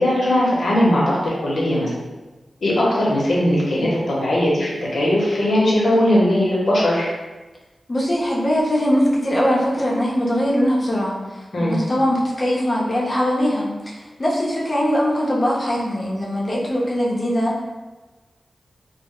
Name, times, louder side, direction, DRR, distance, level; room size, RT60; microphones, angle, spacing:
voice 1, 0.0-1.9 2.6-7.1 11.5-11.8, left 1 dB, 80° left, -5 dB, 0.7 m, -19 dB
voice 2, 7.9-17.6, equal, 40° left, -4 dB, 0.6 m, -21 dB
2.0 x 2.0 x 3.6 m, 1.2 s
wide cardioid pair, 95°, 0 cm